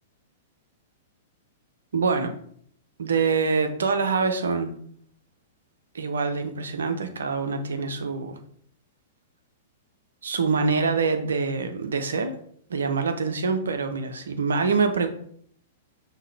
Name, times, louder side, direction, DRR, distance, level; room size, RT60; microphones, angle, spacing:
voice 1, 1.9-2.3 3.0-4.7 5.9-8.4 10.2-12.4 12.7-15.1, right 4 dB, 65° right, 7 dB, 0.6 m, -25 dB
5.6 x 2.8 x 3.2 m, 0.62 s
figure-of-eight pair, 100°, 0 cm